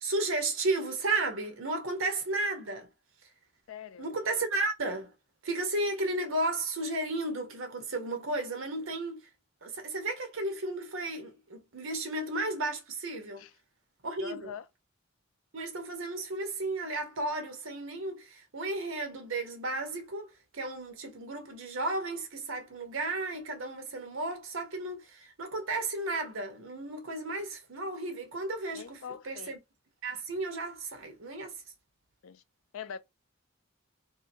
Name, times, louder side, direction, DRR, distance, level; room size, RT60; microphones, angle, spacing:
voice 1, 0.0-2.9 4.0-5.1 5.4-9.3 9.6-13.4 14.0-14.5 15.5-29.0 29.2-29.6 30.0-31.6, right 2 dB, 75° right, 0.9 m, -33 dB
voice 2, 3.7-4.1 13.4-13.5 14.2-14.7 28.7-29.5 32.2-32.4 32.7-33.0, left 7 dB, 75° left, 0.4 m, -43 dB
2.7 x 2.5 x 2.6 m
head